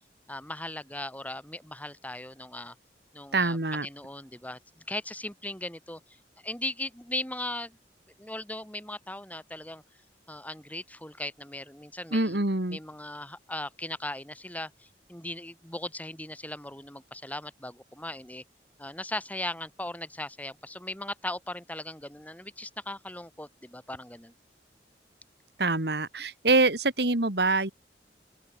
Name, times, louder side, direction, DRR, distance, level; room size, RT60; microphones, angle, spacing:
voice 1, 0.3-2.7 3.1-6.0 6.4-7.8 8.2-9.8 10.3-12.4 12.7-18.4 18.8-24.3, left 1 dB, 10° left, 6.1 m, -38 dB
voice 2, 3.3-3.9 12.1-12.8 25.6-27.7, right 2 dB, 65° right, 2.8 m, -25 dB
open air
head